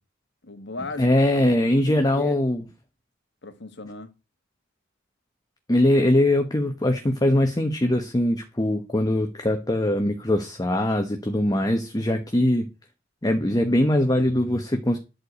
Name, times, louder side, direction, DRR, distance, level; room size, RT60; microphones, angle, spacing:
voice 1, 0.4-1.5 1.9-2.4 3.4-4.1, left 3 dB, 55° left, 1.6 m, -37 dB
voice 2, 1.0-2.6 5.7-12.7 13.2-15.0, left 1 dB, 20° left, 1.1 m, -22 dB
11.5 x 4.9 x 8.1 m
head